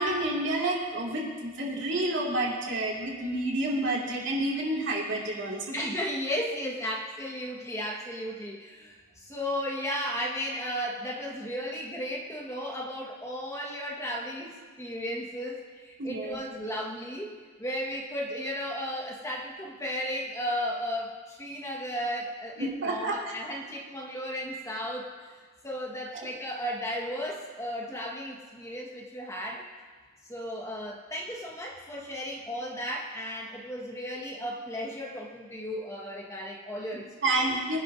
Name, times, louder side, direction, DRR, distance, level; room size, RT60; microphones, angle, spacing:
voice 1, 0.0-5.7 16.0-16.4 22.6-23.2 26.1-26.3 37.2-37.8, right 2 dB, 60° right, -3 dB, 2.6 m, -29 dB
voice 2, 5.7-25.1 25.6-29.6 30.2-37.5, equal, 15° left, -1 dB, 1.6 m, -35 dB
23.5 x 11.0 x 2.8 m, 1.5 s
head